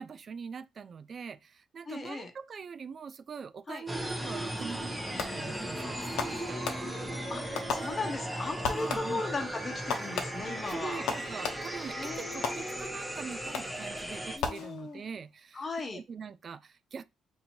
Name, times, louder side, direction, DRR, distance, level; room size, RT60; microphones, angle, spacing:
voice 1, 0.0-6.6 8.7-9.2 10.7-15.7 15.9-17.0, right 6 dB, 50° right, 0.3 m, -43 dB
voice 2, 1.9-2.3 3.7-3.8 7.3-11.0 12.0-12.9 14.4-15.0 15.5-16.0, left 3 dB, 35° left, 0.9 m, -37 dB
sound 1, 3.9-14.4, right 1 dB, ahead, 0.9 m, -37 dB
Fireworks, 5.2-5.6 6.2-7.2 7.5-8.3 8.6-9.3 9.9-11.9 12.4-13.1 13.5-13.9 14.4-15.2, left 5 dB, 80° left, 0.7 m, -37 dB
Trumpet, 5.8-12.2, right 7 dB, 75° right, 1.2 m, -51 dB
2.8 x 2.7 x 4.4 m
cardioid pair, 90°, 0 cm